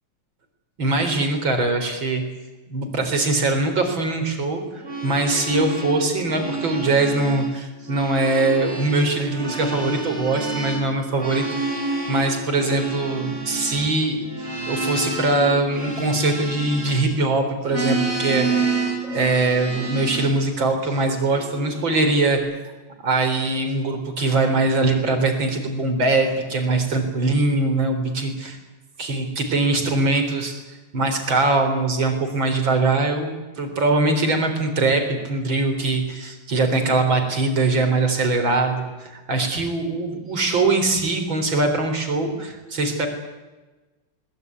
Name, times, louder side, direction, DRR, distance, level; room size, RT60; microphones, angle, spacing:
voice 1, 0.8-2.2 2.7-11.8 12.1-14.2 14.7-22.7 23.0-28.6 29.0-30.6 30.9-43.1, right 2 dB, 60° right, 6 dB, 4.6 m, -22 dB
sound 1, 4.7-7.5 7.8-17.3 17.6-20.4 21.1-22.3, right 3 dB, 30° right, 4.8 m, -29 dB
21.5 x 20.5 x 9.6 m, 1.2 s
omnidirectional pair, 2.4 m